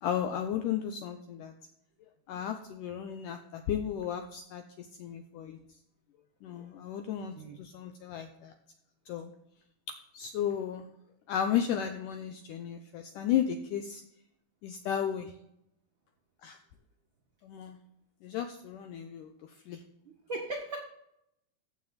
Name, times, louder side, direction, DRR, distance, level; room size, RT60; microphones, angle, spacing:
voice 1, 0.0-1.6 2.3-5.6 6.4-8.5 9.1-9.3 10.1-10.9 11.3-14.0 14.6-15.3 16.4-16.6 17.4-17.8 18.2-19.8, left 9 dB, 75° left, 7 dB, 2.0 m, -34 dB
voice 2, 20.0-20.8, right 2 dB, 80° right, 1 dB, 1.1 m, -38 dB
14.5 x 7.4 x 4.0 m, 0.79 s
omnidirectional pair, 4.3 m